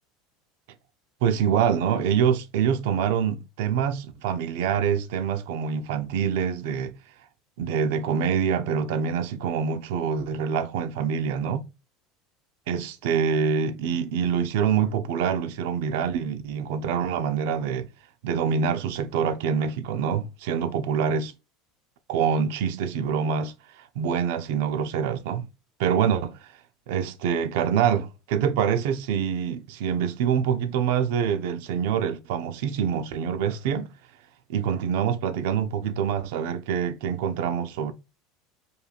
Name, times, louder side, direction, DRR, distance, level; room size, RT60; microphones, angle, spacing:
voice 1, 1.2-6.9 7.6-11.7 12.7-17.9 18.2-21.3 22.1-25.5 25.8-26.4 26.9-33.9 34.5-37.9, right 7 dB, 75° right, 0.6 m, -25 dB
5.3 x 3.1 x 2.5 m
supercardioid pair, 155°, 0 cm